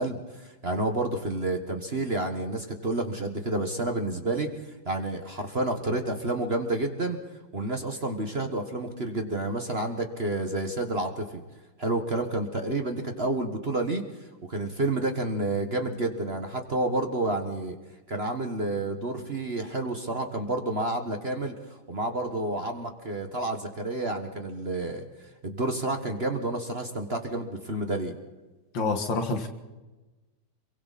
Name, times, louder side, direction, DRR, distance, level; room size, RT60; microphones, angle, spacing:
voice 1, 0.0-4.5 4.8-7.2 7.5-11.4 11.8-17.8 18.1-25.0 25.4-28.2, right 2 dB, 30° right, 5 dB, 1.6 m, -30 dB
voice 2, 28.7-29.5, left 3 dB, 65° left, 6 dB, 2.5 m, -27 dB
27.5 x 23.0 x 4.2 m, 1.1 s
omnidirectional pair, 2.2 m